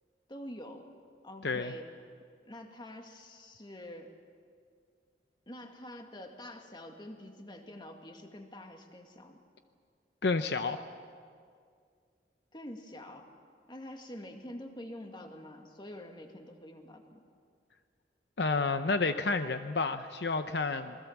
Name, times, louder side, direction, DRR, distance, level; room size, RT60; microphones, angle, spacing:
voice 1, 0.3-0.9 1.2-1.9 2.5-4.1 5.5-9.4 12.5-13.3 13.7-17.2, left 1 dB, 25° left, 4 dB, 2.1 m, -46 dB
voice 2, 1.4-1.7 10.2-10.8 18.4-21.0, left 3 dB, 70° left, 9 dB, 0.8 m, -30 dB
27.0 x 21.0 x 7.3 m, 2.2 s
head